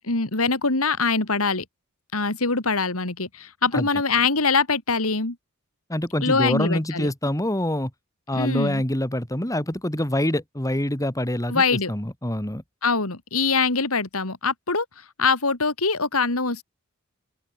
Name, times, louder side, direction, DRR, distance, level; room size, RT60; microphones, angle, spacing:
voice 1, 0.0-1.6 2.1-5.4 6.2-7.1 8.3-8.8 11.5-11.9 12.8-14.8 15.2-16.6, left 4 dB, 75° left, 3.2 m, -23 dB
voice 2, 5.9-7.9 8.3-11.6 11.9-12.6, left 1 dB, 15° left, 2.8 m, -25 dB
open air
head